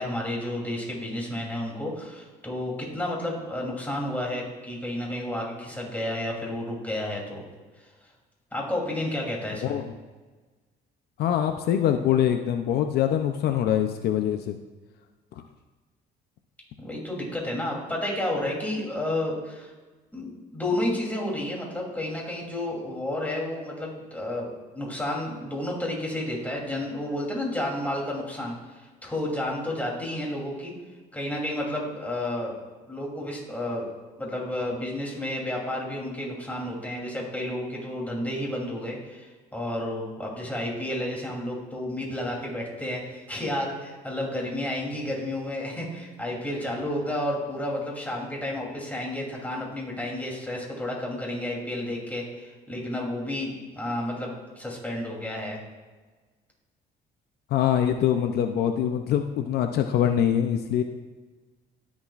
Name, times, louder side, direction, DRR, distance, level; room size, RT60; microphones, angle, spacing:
voice 1, 0.0-7.4 8.5-9.8 16.8-19.7 20.1-30.7 31.1-32.6 32.9-33.9 34.2-55.6, left 1 dB, 10° left, -2 dB, 3.2 m, -31 dB
voice 2, 11.2-14.6 57.5-60.8, left 10 dB, 70° left, 6 dB, 0.6 m, -24 dB
19.5 x 7.2 x 2.5 m, 1.3 s
cardioid pair, 110°, 17 cm